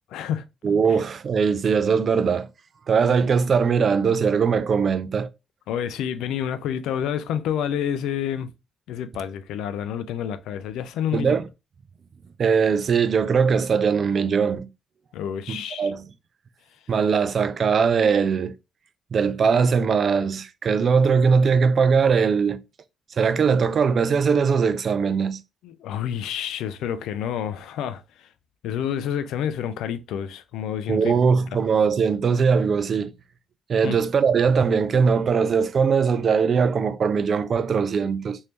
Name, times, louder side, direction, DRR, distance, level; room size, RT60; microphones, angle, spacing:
voice 1, 0.1-0.4 5.7-8.5 8.9-11.3 15.1-15.9 25.6-28.3 28.6-31.1 33.8-34.0, left 9 dB, 85° left, 0.4 m, -29 dB
voice 2, 0.6-2.5 2.9-5.3 11.1-11.5 12.4-14.7 15.5-16.1 16.9-18.5 19.1-22.6 23.1-25.4 30.9-33.1 33.7-38.4, right 6 dB, 50° right, 0.4 m, -20 dB
3.4 x 2.6 x 3.0 m
cardioid pair, 90°, 0 cm